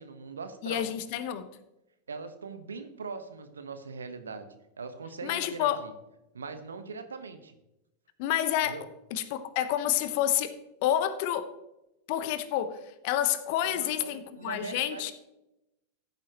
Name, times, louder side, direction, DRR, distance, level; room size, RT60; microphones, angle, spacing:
voice 1, 0.0-0.9 2.1-4.5 4.8-5.9 6.3-7.5 8.6-8.9 13.6-15.1, right 4 dB, 80° right, 9 dB, 1.1 m, -41 dB
voice 2, 0.6-1.5 5.2-5.8 8.2-8.8 9.1-10.5 10.8-11.5 12.1-15.1, left 11 dB, 55° left, 12 dB, 1.0 m, -29 dB
15.0 x 8.9 x 3.0 m, 0.91 s
figure-of-eight pair, 90°, 0 cm